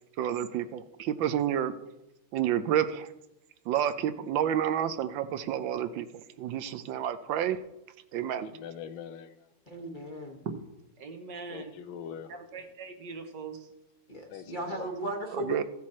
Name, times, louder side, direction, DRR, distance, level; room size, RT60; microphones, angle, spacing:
voice 1, 0.2-1.7 2.3-3.1 3.7-6.1 6.4-7.6 8.1-8.5 15.3-15.6, right 10 dB, 80° right, 1.3 m, -29 dB
voice 2, 8.4-9.5 11.5-12.3 14.3-14.9, left 8 dB, 90° left, 1.5 m, -43 dB
voice 3, 9.7-10.4 14.1-15.6, equal, 30° left, 1.0 m, -36 dB
voice 4, 11.0-11.8 12.3-13.7, right 5 dB, 65° right, 1.6 m, -40 dB
15.0 x 6.2 x 4.3 m
omnidirectional pair, 2.1 m